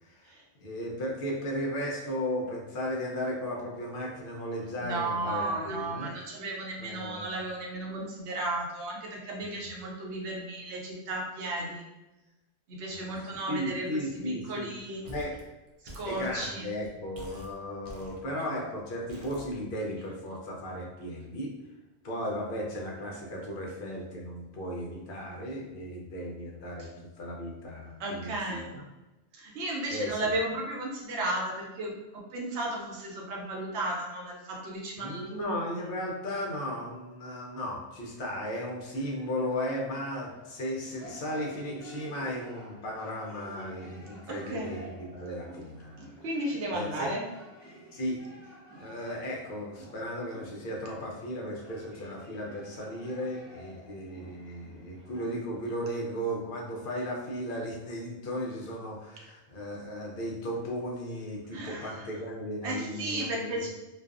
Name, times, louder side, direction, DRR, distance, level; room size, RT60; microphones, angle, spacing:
voice 1, 0.0-0.3 0.6-6.1 6.8-7.3 9.4-9.7 12.9-13.1 13.5-14.7 15.1-15.3 16.0-21.6 22.0-26.9 27.2-28.8 29.9-30.3 35.0-46.3 46.7-47.1 47.9-48.2 48.8-63.7, equal, 60° left, -1 dB, 0.7 m, -35 dB
voice 2, 4.8-11.8 12.7-13.9 14.3-15.0 15.8-16.7 28.0-28.7 29.3-31.9 32.3-35.6 44.3-44.7 46.2-47.2 61.5-62.1 62.6-63.7, right 2 dB, 85° right, -1 dB, 0.9 m, -34 dB
sound 1, 15.0-15.4 15.7-16.9 17.1-18.5 19.1-20.4, equal, 50° right, 0.4 m, -47 dB
sound 2, 38.9-55.8, right 1 dB, 20° left, 0.5 m, -51 dB
2.4 x 2.2 x 2.4 m, 1.1 s
omnidirectional pair, 1.1 m